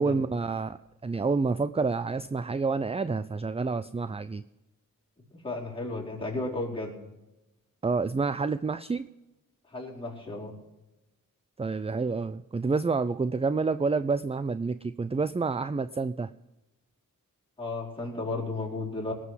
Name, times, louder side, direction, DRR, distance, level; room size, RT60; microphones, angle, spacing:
voice 1, 0.0-4.4 7.8-9.1 11.6-16.3, right 4 dB, 20° right, 13 dB, 0.4 m, -28 dB
voice 2, 5.3-6.9 9.7-10.5 17.6-19.1, left 2 dB, 15° left, -4 dB, 4.5 m, -34 dB
18.5 x 6.3 x 7.6 m, 1.0 s
wide cardioid pair, 70°, 33 cm